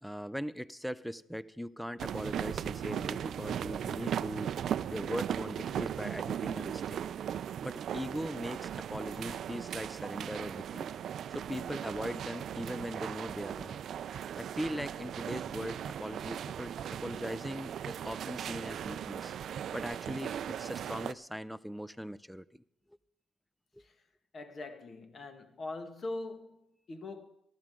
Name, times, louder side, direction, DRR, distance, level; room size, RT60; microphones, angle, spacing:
voice 1, 0.0-4.5 4.9-7.0 7.6-10.9 11.3-13.8 14.4-19.3 19.7-22.6 23.7-23.8, equal, ahead, 0.5 m, -40 dB
sound 1, 2.0-21.1, right 9 dB, 65° right, 0.4 m, -38 dB
voice 2, 24.3-27.3, left 2 dB, 45° left, 1.7 m, -42 dB
17.5 x 14.0 x 3.8 m
cardioid pair, 90°, 0 cm